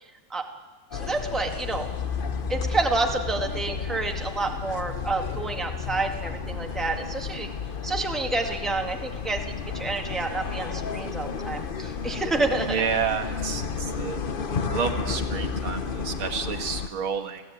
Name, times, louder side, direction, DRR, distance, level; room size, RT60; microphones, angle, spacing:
sound 1, 0.9-16.9, left 5 dB, 40° left, 0.7 m, -32 dB
voice 1, 0.9-1.9 2.5-7.5 7.8-12.8, right 3 dB, ahead, 3 dB, 1.8 m, -29 dB
voice 2, 12.7-14.2 14.7-17.4, right 6 dB, 90° right, 4 dB, 2.7 m, -30 dB
29.5 x 16.5 x 9.3 m, 1.3 s
omnidirectional pair, 2.2 m